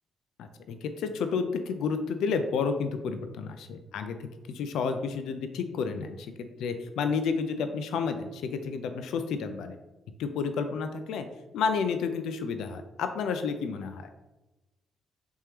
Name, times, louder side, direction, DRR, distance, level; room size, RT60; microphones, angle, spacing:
voice 1, 0.4-4.2 4.5-9.8 10.2-11.3 11.5-14.1, left 5 dB, 80° left, 8 dB, 0.3 m, -31 dB
3.5 x 3.1 x 2.9 m, 1.1 s
cardioid pair, 90°, 0 cm